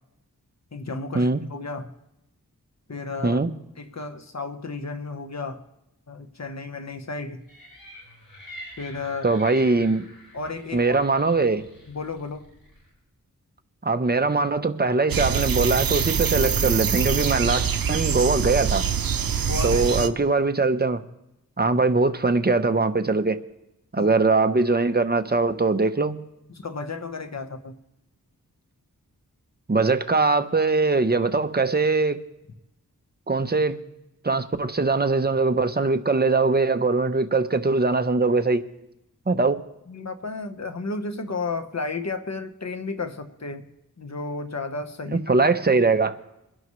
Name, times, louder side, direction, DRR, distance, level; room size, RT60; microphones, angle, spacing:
voice 1, 0.7-1.9 2.9-3.4 3.8-5.6 6.1-7.4 8.8-9.4 10.3-11.0 11.9-12.5 19.4-20.1 24.0-24.1 26.5-27.8 39.9-43.6 44.0-45.4, left 3 dB, 50° left, 1.2 m, -33 dB
sound 1, 7.5-12.9, left 1 dB, 80° left, 5.4 m, -46 dB
voice 2, 9.2-10.0 10.7-11.6 13.8-18.8 19.6-21.0 21.6-23.4 23.9-26.2 29.7-32.2 33.3-33.8 34.2-38.6 39.3-39.6 45.3-46.2, right 3 dB, 25° right, 0.9 m, -21 dB
sound 2, 15.1-20.1, right 7 dB, 75° right, 0.7 m, -24 dB
22.5 x 11.0 x 3.2 m
wide cardioid pair, 70°, 35 cm